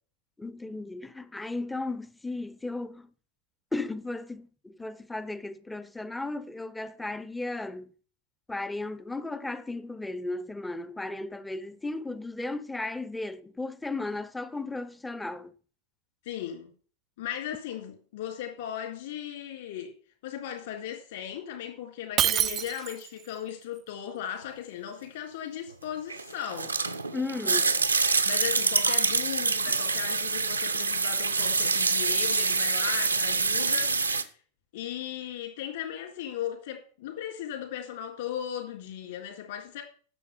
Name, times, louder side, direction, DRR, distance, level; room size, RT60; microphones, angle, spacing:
voice 1, 0.4-3.1 3.7-7.9 8.5-15.5 27.1-27.7 29.7-29.8, left 2 dB, 5° left, 0.7 m, -35 dB
voice 2, 16.3-16.7 17.2-19.9 20.2-26.8 28.3-33.9 34.7-39.8, left 10 dB, 60° left, 3.6 m, -37 dB
Shatter, 22.2-23.2, right 11 dB, 30° right, 0.4 m, -26 dB
sound 1, 26.1-34.2, right 4 dB, 80° right, 0.8 m, -26 dB
11.0 x 7.2 x 5.8 m
figure-of-eight pair, 90°, 0 cm